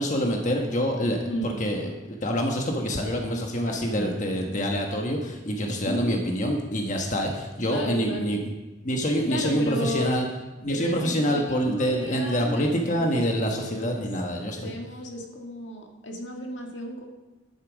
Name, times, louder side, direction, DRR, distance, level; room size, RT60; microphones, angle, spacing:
voice 1, 0.0-8.4 8.8-10.3 10.6-14.7, equal, 40° left, 1 dB, 1.3 m, -26 dB
voice 2, 1.2-1.6 3.9-4.2 5.8-6.2 7.7-8.3 9.3-10.1 10.7-14.0 14.6-17.1, equal, 80° left, 1 dB, 1.9 m, -34 dB
11.0 x 8.6 x 6.2 m, 1.1 s
head